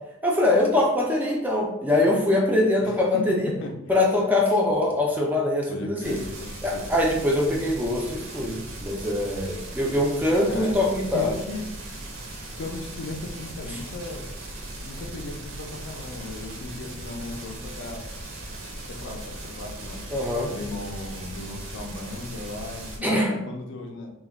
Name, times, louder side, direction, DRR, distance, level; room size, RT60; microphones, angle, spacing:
voice 1, 0.2-3.5 3.9-6.2 6.6-11.3 13.7-13.8 20.1-20.5 23.0-23.3, left 1 dB, 10° right, -1 dB, 0.3 m, -23 dB
voice 2, 2.8-3.7 5.7-6.8 10.5-10.8 11.1-11.7 12.6-14.2 14.8-18.0 18.9-20.0 20.5-24.1, left 2 dB, 60° left, 3 dB, 0.4 m, -36 dB
sound 1, 6.0-23.0, right 1 dB, 65° right, 0.6 m, -38 dB
2.2 x 2.1 x 3.4 m, 0.89 s
head